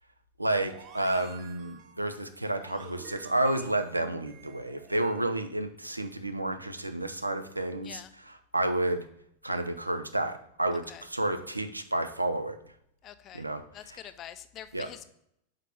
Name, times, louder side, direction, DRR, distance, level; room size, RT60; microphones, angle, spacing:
voice 1, 0.4-9.0 9.4-12.6 13.3-14.0 14.7-14.9, right 1 dB, 85° right, 8 dB, 0.5 m, -31 dB
sound 1, 0.5-5.5, right 7 dB, 40° right, 0.6 m, -50 dB
voice 2, 13.0-13.5 13.7-15.0, left 11 dB, 30° left, 12 dB, 0.4 m, -45 dB
5.7 x 5.0 x 3.4 m, 0.73 s
figure-of-eight pair, 90°, 0 cm